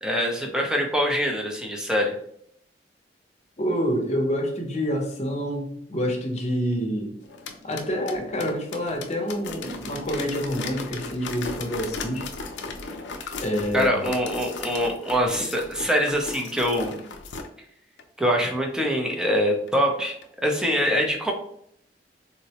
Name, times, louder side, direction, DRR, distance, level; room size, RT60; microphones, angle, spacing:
voice 1, 0.0-2.1 13.7-17.0 18.2-20.2 20.4-21.3, equal, 5° right, 1 dB, 0.5 m, -24 dB
voice 2, 3.6-7.1 7.6-12.3 13.4-14.1, equal, 40° left, 1 dB, 0.7 m, -27 dB
sound 1, 7.2-17.5 18.0-18.1 18.5-18.6 19.1-19.2 19.7-19.8 20.2-20.3, left 4 dB, 90° left, 0.5 m, -37 dB
3.8 x 2.1 x 2.8 m, 0.69 s
head